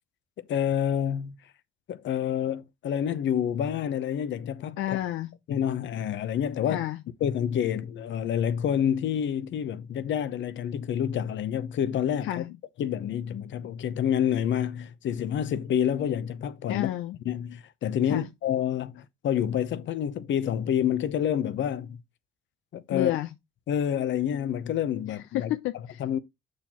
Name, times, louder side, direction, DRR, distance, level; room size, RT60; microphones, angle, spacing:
voice 1, 0.5-1.4 1.9-4.8 5.5-6.9 7.2-12.5 12.8-16.9 17.2-22.0 22.7-23.2 23.7-25.5 26.0-26.2, left 9 dB, 70° left, 0.8 m, -28 dB
voice 2, 4.8-5.3 6.7-7.0 12.2-12.5 16.7-17.2 18.1-18.3 22.9-23.3 25.1-26.0, left 13 dB, 90° left, 0.5 m, -30 dB
7.2 x 6.5 x 2.9 m
cardioid pair, 90°, 20 cm